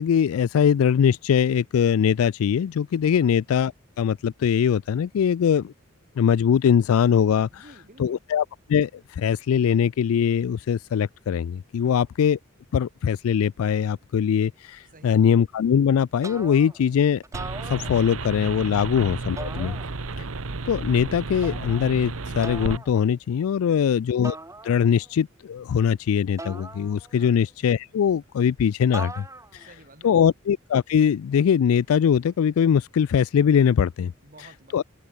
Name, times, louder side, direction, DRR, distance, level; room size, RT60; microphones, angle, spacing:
voice 1, 0.0-3.7 4.0-5.7 6.2-7.6 8.0-12.4 12.7-17.2 17.7-19.7 20.7-24.3 24.6-29.2 29.5-29.7 30.0-34.1 34.7-34.8, left 8 dB, 80° left, 0.3 m, -22 dB
voice 2, 7.5-8.3 11.8-12.0 14.9-15.3 18.8-19.0 19.7-20.0 23.6-24.0 27.2-27.4 29.5-30.3 34.2-34.8, right 2 dB, 40° right, 5.6 m, -51 dB
sound 1, 16.2-16.9 17.2-18.4 19.4-20.3 21.4-21.9 22.4-22.9 24.2-25.1 26.4-27.4 28.9-29.7, right 2 dB, 15° right, 3.5 m, -39 dB
sound 2, 17.3-22.8, right 3 dB, 75° right, 1.2 m, -32 dB
open air
head